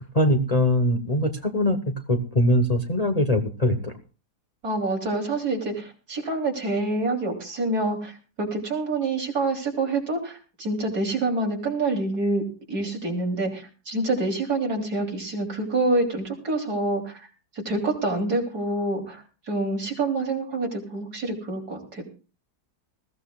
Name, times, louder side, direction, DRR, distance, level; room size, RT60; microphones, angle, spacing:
voice 1, 0.1-1.8 2.1-3.9, left 1 dB, 25° left, 5 dB, 1.1 m, -22 dB
voice 2, 4.6-22.0, right 2 dB, 70° right, 1 dB, 3.8 m, -27 dB
20.5 x 15.5 x 2.4 m, 0.35 s
omnidirectional pair, 1.8 m